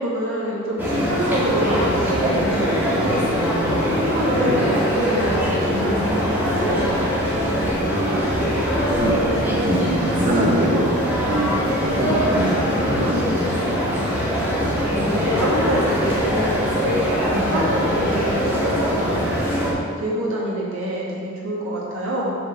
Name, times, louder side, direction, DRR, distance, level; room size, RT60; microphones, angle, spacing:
voice 1, 0.0-3.3 3.9-6.9 12.9-13.4 14.8-19.5 20.0-22.4, right 1 dB, 65° right, -6 dB, 2.5 m, -26 dB
sound 1, 0.8-19.7, equal, 10° right, 2.3 m, -22 dB
voice 2, 4.3-4.6 7.8-13.2 13.4-13.6, right 1 dB, 40° right, -4 dB, 1.1 m, -25 dB
8.0 x 4.9 x 7.3 m, 2.2 s
head